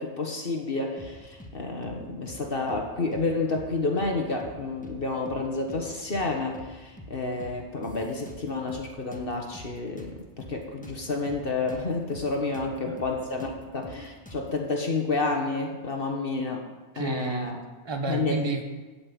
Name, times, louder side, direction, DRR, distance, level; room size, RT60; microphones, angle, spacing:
voice 1, 0.0-16.6 17.0-17.6 18.1-18.4, left 3 dB, 55° left, 2 dB, 1.5 m, -30 dB
sound 1, 1.0-1.6 1.8-2.0 2.3-3.3 3.5-3.7 4.0-5.0 5.3-5.4 5.7-6.7 7.0-7.1 7.4-8.9 9.1-11.9 12.1-12.3 12.5-14.6, equal, 5° left, 1.3 m, -45 dB
voice 2, 16.9-18.6, right 2 dB, 25° right, 5 dB, 1.1 m, -31 dB
13.5 x 5.9 x 8.8 m, 1.3 s
omnidirectional pair, 1.2 m